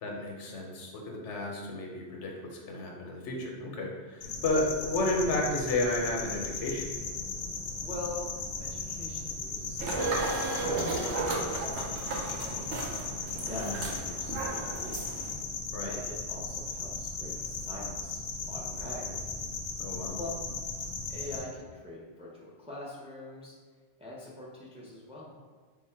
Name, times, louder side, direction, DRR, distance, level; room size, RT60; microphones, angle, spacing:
voice 1, 0.0-6.9 13.4-13.7 15.7-15.9 19.8-20.2, left 2 dB, 85° left, 0 dB, 1.0 m, -32 dB
sound 1, 4.2-21.4, left 4 dB, 65° left, 0.8 m, -37 dB
voice 2, 7.8-8.3 8.6-10.9 11.4-12.8 13.3-15.2 15.8-18.2 18.5-19.3 20.2-20.3 21.1-23.5 24.0-25.3, left 2 dB, 10° right, -5 dB, 0.4 m, -44 dB
sound 2, 9.8-15.3, right 2 dB, 75° right, 1.0 m, -34 dB
3.7 x 2.1 x 4.3 m, 1.4 s
omnidirectional pair, 1.2 m